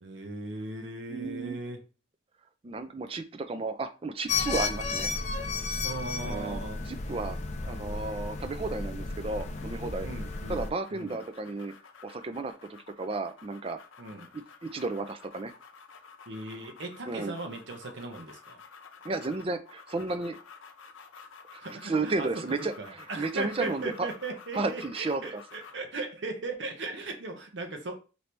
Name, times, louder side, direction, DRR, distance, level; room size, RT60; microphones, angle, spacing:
voice 1, 0.0-1.8 5.8-6.8 10.0-10.6 10.9-11.2 14.0-14.3 16.3-18.6 21.6-28.0, right 2 dB, 65° right, 0.7 m, -38 dB
voice 2, 1.1-1.6 2.6-5.1 6.2-10.1 10.5-11.7 12.0-12.5 13.0-13.8 14.3-15.5 17.1-17.3 19.0-20.4 21.5-24.1 24.5-25.4, right 3 dB, 30° right, 0.4 m, -33 dB
sound 1, 4.3-10.7, left 4 dB, 35° left, 0.4 m, -33 dB
sound 2, 9.4-25.9, left 5 dB, 85° left, 0.6 m, -51 dB
4.4 x 2.7 x 3.3 m
head